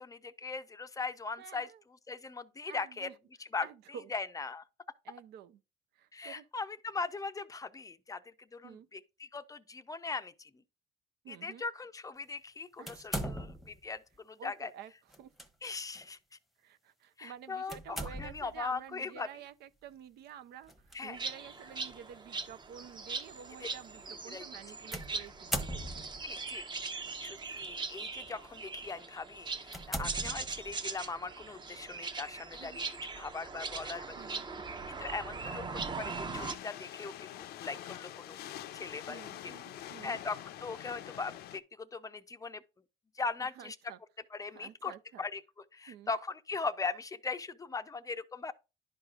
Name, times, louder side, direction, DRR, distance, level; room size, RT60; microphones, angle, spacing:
voice 1, 0.0-1.7 2.1-3.1 3.4-3.7 4.1-4.6 6.1-10.5 11.3-14.7 15.6-16.2 17.2-19.3 20.9-21.2 23.6-23.7 24.3-24.4 26.2-26.6 27.2-32.9 33.1-34.2 34.9-38.4 38.7-39.5 40.0-42.6 43.2-43.8 44.3-45.4 45.7-48.5, left 4 dB, 20° left, 0.5 m, -40 dB
voice 2, 1.4-1.8 2.6-3.1 3.6-4.1 5.0-5.6 5.9-6.5 8.6-8.9 11.2-11.7 12.8-13.3 14.4-14.9 15.2-15.3 16.6-25.9 32.6-32.8 34.2-34.5 39.1-40.2 43.4-44.0 44.5-45.2 45.9-46.1, right 9 dB, 75° right, 0.6 m, -50 dB
sound 1, 12.9-13.8 15.1-15.5 15.9-16.1 17.7-18.6 20.7-21.0 21.8-21.9 24.9-26.3 27.2-27.7 28.2-28.4 29.0-29.1 29.7-30.9, equal, ahead, 0.9 m, -39 dB
sound 2, 21.1-36.5, right 4 dB, 25° right, 0.8 m, -41 dB
sound 3, 36.3-41.6, left 12 dB, 70° left, 0.5 m, -46 dB
11.0 x 4.8 x 2.4 m
cardioid pair, 110°, 17 cm